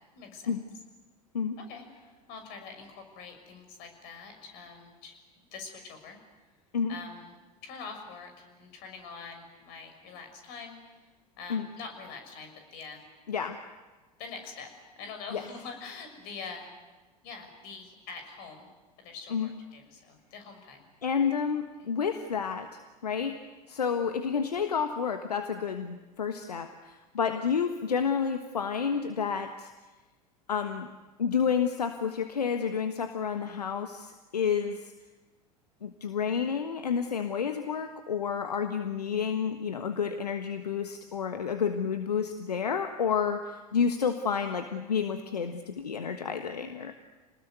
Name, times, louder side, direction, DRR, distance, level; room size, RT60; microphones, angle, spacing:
voice 1, 0.1-0.6 1.6-1.8 2.3-6.2 6.9-10.8 11.4-13.0 14.2-14.7 14.9-16.7 17.2-18.7 19.0-20.8 21.8-21.9, left 5 dB, 50° left, 5 dB, 6.6 m, -44 dB
voice 2, 13.3-13.6 15.3-15.4 19.3-19.5 21.0-23.4 23.7-29.7 30.5-30.9 31.2-34.9 35.8-46.9, left 6 dB, 80° left, 7 dB, 1.4 m, -30 dB
29.0 x 20.0 x 9.5 m, 1.2 s
figure-of-eight pair, 80°, 20 cm